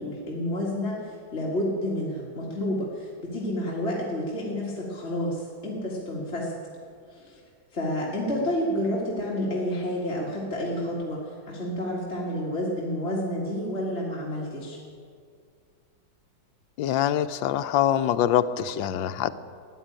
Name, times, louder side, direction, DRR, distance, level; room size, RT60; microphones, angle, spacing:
voice 1, 0.0-6.5 7.1-7.4 7.7-14.8, left 1 dB, 35° left, -4 dB, 2.0 m, -30 dB
voice 2, 16.8-19.3, left 10 dB, 75° left, 12 dB, 1.3 m, -24 dB
13.5 x 10.0 x 8.8 m, 2.2 s
omnidirectional pair, 2.1 m